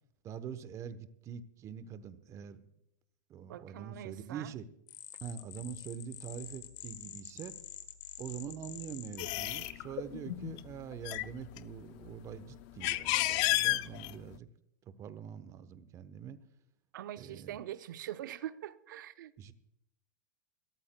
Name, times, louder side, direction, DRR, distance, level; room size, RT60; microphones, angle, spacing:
voice 1, 0.2-2.6 3.3-4.7 5.2-7.5 8.2-14.5 14.9-16.4 17.2-17.6 19.4-19.5, right 8 dB, 30° right, 0.9 m, -44 dB
voice 2, 3.5-4.5 16.9-19.3, right 12 dB, 75° right, 0.7 m, -43 dB
sound 1, 4.9-10.7, left 10 dB, 70° left, 1.4 m, -45 dB
sound 2, 9.2-9.7 10.4-10.6 10.9-12.0 12.5-14.4, left 18 dB, 45° left, 0.4 m, -31 dB
23.5 x 13.5 x 2.2 m
hypercardioid pair, 130°, 10 cm